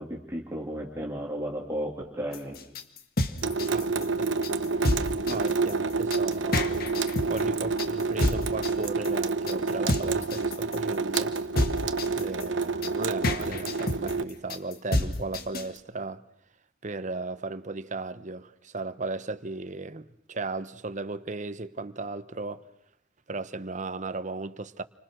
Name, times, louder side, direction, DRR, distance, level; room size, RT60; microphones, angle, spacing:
voice 1, 0.0-2.6 5.3-5.6, equal, 15° right, 2.7 m, -34 dB
sound 1, 2.3-15.8, left 1 dB, 55° left, 1.8 m, -30 dB
Water tap faucet / Sink (filling or washing) / Drip, 3.4-14.2, right 4 dB, 80° right, 1.0 m, -28 dB
voice 2, 3.7-4.4 5.3-6.9 7.3-11.3 12.1-16.2 16.8-22.6 23.3-24.8, right 3 dB, 40° right, 1.0 m, -36 dB
29.5 x 25.0 x 6.2 m
head